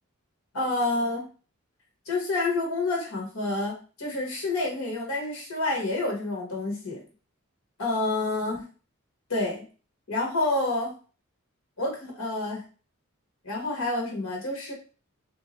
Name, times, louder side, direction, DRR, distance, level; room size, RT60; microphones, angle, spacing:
voice 1, 0.5-1.3 2.1-7.0 7.8-8.6 9.3-9.6 10.1-10.9 11.8-12.6 13.4-14.7, left 2 dB, 80° left, -1 dB, 1.3 m, -28 dB
3.5 x 2.7 x 3.0 m, 0.37 s
head